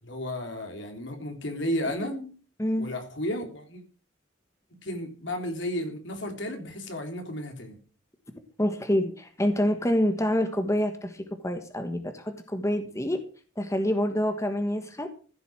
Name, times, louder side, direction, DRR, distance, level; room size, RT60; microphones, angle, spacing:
voice 1, 0.0-2.2 2.8-3.8 4.7-7.8, left 1 dB, 70° left, 5 dB, 3.4 m, -33 dB
voice 2, 1.9-2.3 2.6-2.9 8.6-13.2 13.6-15.1, left 1 dB, 15° left, 7 dB, 1.4 m, -27 dB
15.0 x 8.1 x 6.2 m, 0.39 s
head